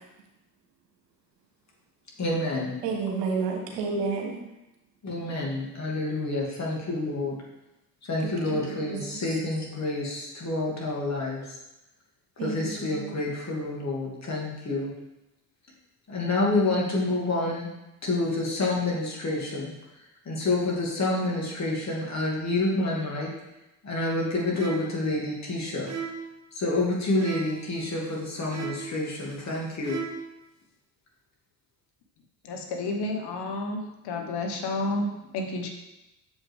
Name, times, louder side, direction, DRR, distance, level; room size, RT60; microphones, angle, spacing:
voice 1, 2.2-2.7 5.0-7.4 8.0-11.6 12.4-14.9 16.1-17.7 18.0-19.7 20.3-23.3 23.8-25.9 26.5-30.0, left 2 dB, 35° left, -3 dB, 2.5 m, -28 dB
voice 2, 2.8-4.4 8.2-9.0 12.4-13.1, right 4 dB, 80° right, 1 dB, 1.3 m, -31 dB
sound 1, 24.5-25.0 25.9-26.3 27.1-27.7 28.5-29.0 29.8-30.3, right 6 dB, 35° right, 1.2 m, -35 dB
voice 3, 32.4-35.7, left 2 dB, 55° left, 2 dB, 1.3 m, -31 dB
6.9 x 5.4 x 3.5 m, 0.94 s
hypercardioid pair, 60°, 48 cm